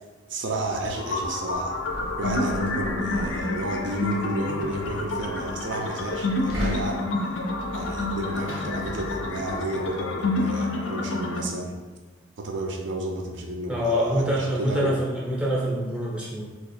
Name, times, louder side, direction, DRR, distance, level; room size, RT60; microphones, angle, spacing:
voice 1, 0.3-1.8 2.2-7.1 7.7-11.8 12.4-14.9, right 2 dB, 65° right, 1 dB, 0.4 m, -32 dB
sound 1, 0.6-11.4, left 2 dB, 70° left, 0.4 m, -29 dB
Knock, 1.5-9.4, equal, 85° right, 0.8 m, -38 dB
voice 2, 13.7-16.5, equal, 5° right, -5 dB, 0.6 m, -25 dB
2.9 x 2.3 x 4.2 m, 1.2 s
head